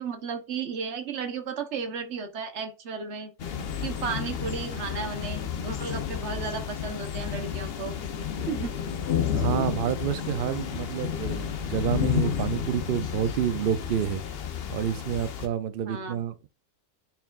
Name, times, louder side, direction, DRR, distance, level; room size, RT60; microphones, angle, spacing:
voice 1, 0.0-3.3 3.8-7.9 8.5-8.8 15.8-16.2, right 5 dB, 50° right, 1.2 m, -34 dB
sound 1, 3.4-15.5, left 8 dB, 55° left, 0.7 m, -31 dB
voice 2, 9.3-14.2 14.7-16.5, right 10 dB, 85° right, 0.4 m, -29 dB
9.0 x 4.6 x 2.4 m
omnidirectional pair, 1.6 m